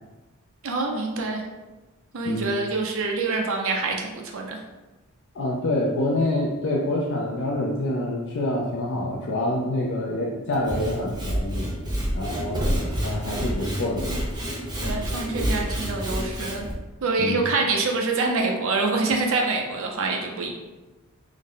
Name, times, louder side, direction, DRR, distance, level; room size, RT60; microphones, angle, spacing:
voice 1, 0.6-1.4 2.1-4.6 14.8-16.7 17.0-20.5, right 3 dB, 60° right, 2 dB, 0.5 m, -26 dB
voice 2, 5.3-11.7 12.1-14.2 17.2-17.4, left 1 dB, 55° left, -3 dB, 0.4 m, -27 dB
Sawing / Wood, 10.5-16.7, equal, 20° right, 0.6 m, -28 dB
3.5 x 2.1 x 3.6 m, 1.1 s
head